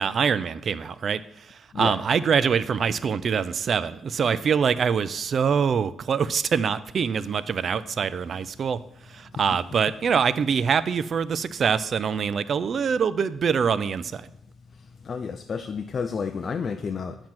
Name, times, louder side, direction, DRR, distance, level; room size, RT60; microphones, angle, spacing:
voice 1, 0.0-8.8 9.1-14.3, right 6 dB, 50° right, 16 dB, 0.4 m, -24 dB
voice 2, 15.1-17.2, left 5 dB, 45° left, 7 dB, 0.4 m, -30 dB
7.4 x 4.5 x 5.8 m, 0.76 s
cardioid pair, 90°, 0 cm